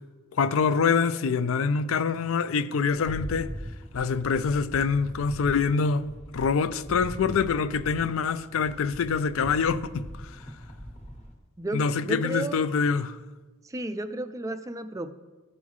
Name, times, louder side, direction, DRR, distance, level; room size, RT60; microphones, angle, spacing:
voice 1, 0.3-3.5 3.9-6.0 6.3-10.3 11.7-13.2, left 5 dB, 65° left, 0.4 m, -25 dB
Rattle, 2.9-11.3, equal, 30° left, 1.4 m, -41 dB
voice 2, 11.6-12.7 13.6-15.1, right 2 dB, 15° right, 0.3 m, -33 dB
14.5 x 5.5 x 3.1 m
head